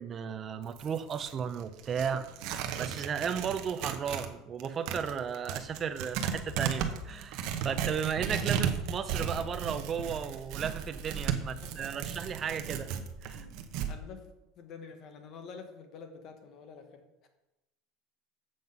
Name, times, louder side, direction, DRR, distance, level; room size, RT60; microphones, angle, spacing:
voice 1, 0.0-2.3 2.8-12.9 13.2-13.4, right 7 dB, 25° right, 10 dB, 0.5 m, -35 dB
Tearing, 0.6-4.3 4.6-13.9, right 8 dB, 55° right, 0.8 m, -35 dB
voice 2, 11.4-12.1 13.3-17.3, left 5 dB, 40° left, 6 dB, 1.1 m, -49 dB
7.7 x 5.5 x 5.4 m, 0.97 s
cardioid pair, 170°, 0 cm